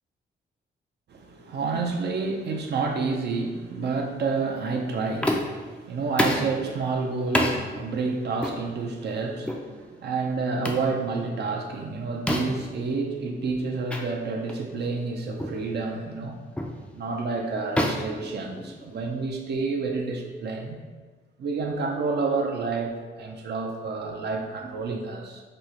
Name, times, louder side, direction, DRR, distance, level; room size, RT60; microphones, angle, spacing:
voice 1, 1.1-16.4 16.9-20.8 21.4-25.4, right 4 dB, 60° right, 2 dB, 0.4 m, -29 dB
sound 1, 5.2-5.6 6.2-6.5 7.3-7.6 8.4-8.6 9.4-9.7 10.6-10.9 12.3-12.7 13.9-14.0 14.5-14.6 15.4-15.6 16.6-16.8 17.8-19.0, left 1 dB, 5° left, 0.3 m, -27 dB
2.9 x 2.0 x 3.7 m, 1.4 s
cardioid pair, 75°, 20 cm